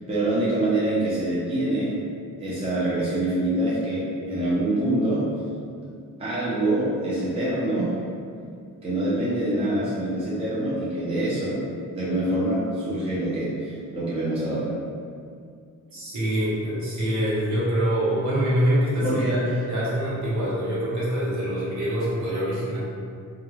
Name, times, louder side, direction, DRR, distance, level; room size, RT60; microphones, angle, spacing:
voice 1, 0.1-2.0 2.4-5.2 6.2-7.9 8.8-11.6 11.9-14.7 19.0-19.4, right 1 dB, 15° right, -9 dB, 0.5 m, -25 dB
voice 2, 15.9-22.8, equal, 55° right, -9 dB, 1.0 m, -25 dB
2.3 x 2.1 x 3.0 m, 2.3 s
cardioid pair, 110°, 35 cm